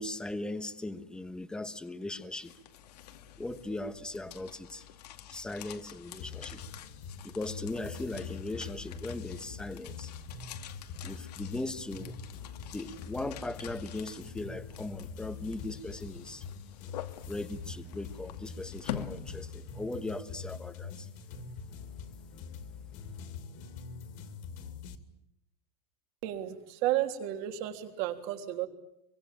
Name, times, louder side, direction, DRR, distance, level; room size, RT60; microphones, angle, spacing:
voice 1, 0.0-2.5 3.4-4.9 5.3-6.6 7.2-10.1 11.0-12.2 12.6-16.4 17.3-21.1, left 2 dB, 5° left, 1.2 m, -39 dB
sound 1, 2.4-20.1, left 11 dB, 85° left, 2.4 m, -47 dB
sound 2, 6.2-25.0, left 5 dB, 40° left, 2.6 m, -44 dB
voice 2, 26.2-28.7, right 13 dB, 45° right, 3.4 m, -32 dB
26.0 x 24.0 x 9.0 m
supercardioid pair, 165°, 20 cm